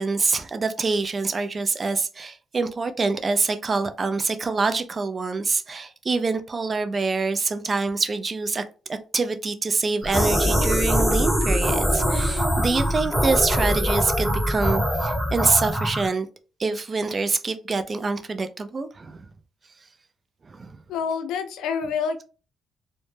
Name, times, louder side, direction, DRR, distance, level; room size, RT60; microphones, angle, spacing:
voice 1, 0.0-8.6 8.9-16.3 16.6-19.2 20.5-20.7, right 4 dB, 35° right, 0.3 m, -25 dB
sound 1, 10.0-16.1, equal, 10° right, 0.9 m, -23 dB
voice 2, 20.9-22.2, left 6 dB, 85° left, 0.4 m, -27 dB
2.1 x 2.0 x 3.0 m
cardioid pair, 90°, 0 cm